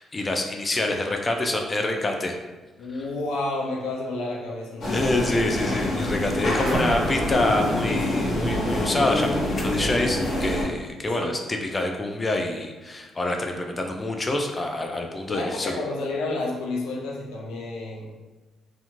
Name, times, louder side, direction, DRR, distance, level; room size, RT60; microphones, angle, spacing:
voice 1, 0.0-2.3 4.9-15.7, left 2 dB, 25° left, 3 dB, 0.4 m, -26 dB
voice 2, 2.8-5.2 6.5-7.2 11.1-11.3 15.3-18.0, left 2 dB, 90° left, -2 dB, 0.5 m, -31 dB
sound 1, 4.8-10.6, left 1 dB, 60° left, 1.0 m, -26 dB
2.9 x 2.5 x 2.5 m, 1.2 s
cardioid pair, 90°, 0 cm